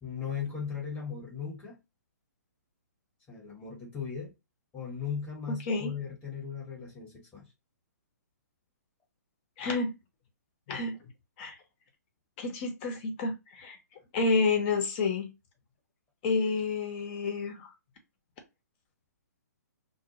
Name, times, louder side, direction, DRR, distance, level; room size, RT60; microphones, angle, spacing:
voice 1, 0.0-1.8 3.3-4.3 4.7-7.5, left 7 dB, 15° left, 1.1 m, -37 dB
voice 2, 9.6-10.0 10.7-11.0 11.4-11.6 12.4-13.8 14.1-15.3 16.2-17.7, left 4 dB, 35° left, 0.8 m, -29 dB
2.3 x 2.2 x 2.8 m
hypercardioid pair, 130°, 9 cm